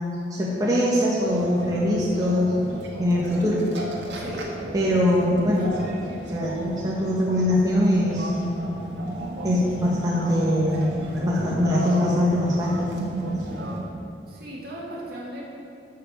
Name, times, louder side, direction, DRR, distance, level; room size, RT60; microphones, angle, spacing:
voice 1, 0.3-3.7 4.7-5.7 6.3-8.3 9.4-10.9 11.1-12.9, left 1 dB, 20° right, -7 dB, 1.6 m, -22 dB
sound 1, 1.2-13.8, right 1 dB, 80° right, 1.7 m, -33 dB
voice 2, 4.1-4.5 5.6-5.9 14.3-15.4, right 1 dB, 55° right, -5 dB, 2.5 m, -36 dB
12.0 x 5.7 x 7.2 m, 2.5 s
head